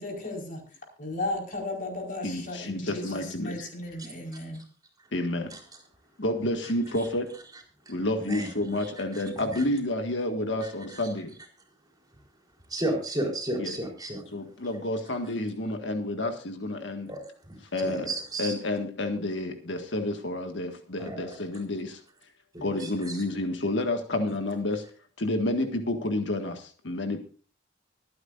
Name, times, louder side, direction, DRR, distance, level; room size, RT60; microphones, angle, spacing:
voice 1, 0.0-0.6 1.0-4.6, left 2 dB, 50° left, 0 dB, 4.8 m, -35 dB
voice 2, 2.2-3.6 5.1-5.5 6.2-7.3 7.9-11.3 13.6-13.7 14.3-17.1 17.7-18.1 18.4-22.0 22.6-24.8 25.2-27.2, left 1 dB, 80° left, 5 dB, 1.7 m, -30 dB
voice 3, 7.9-9.6 10.6-11.1 12.7-14.2 17.1-18.5 21.0-21.4 22.5-23.2, right 1 dB, 20° right, 1 dB, 4.3 m, -35 dB
24.5 x 9.6 x 2.6 m, 0.40 s
head